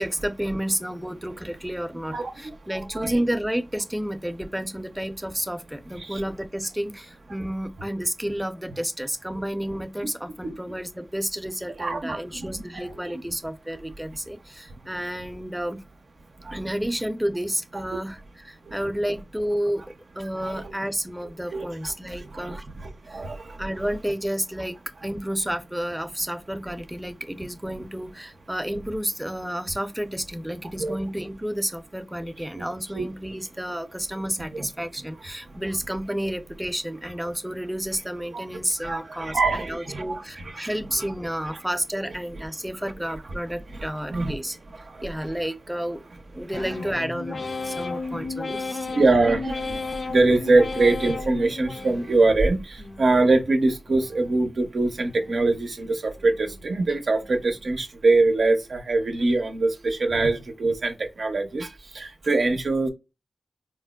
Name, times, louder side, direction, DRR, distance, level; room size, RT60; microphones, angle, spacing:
voice 1, 0.0-15.8 16.5-18.2 18.4-19.8 20.2-22.6 23.1-23.2 23.6-24.8 25.0-44.6 45.0-46.0 46.3-48.9, equal, 10° right, 0.5 m, -31 dB
voice 2, 2.1-3.2 6.0-6.2 10.4-10.7 11.8-13.3 16.4-16.6 18.6-18.8 20.4-20.7 21.2-23.6 30.8-31.0 32.6-32.7 32.9-33.1 34.5-34.7 35.5-35.6 38.3-38.5 38.8-41.1 41.5-41.6 42.1-42.2 43.7-44.4 44.7-45.3 46.3-46.8 47.7-48.3 48.6-62.9, right 3 dB, 75° right, 0.5 m, -24 dB
sound 1, 46.5-52.4 52.8-53.4 53.9-54.5 55.0-55.6 56.1-56.7 57.2-57.7, left 4 dB, 70° left, 0.5 m, -35 dB
4.3 x 2.1 x 2.2 m
cardioid pair, 40°, 0 cm